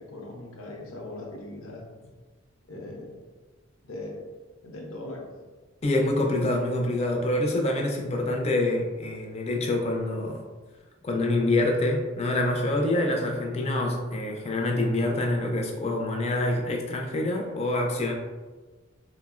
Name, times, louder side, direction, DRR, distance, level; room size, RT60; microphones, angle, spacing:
voice 1, 0.0-1.8 2.7-3.2 3.8-4.3 4.6-5.2, left 2 dB, 85° left, -1 dB, 0.6 m, -39 dB
voice 2, 5.8-10.4 11.0-18.1, left 1 dB, 30° left, 1 dB, 0.4 m, -26 dB
3.4 x 2.0 x 2.3 m, 1.3 s
head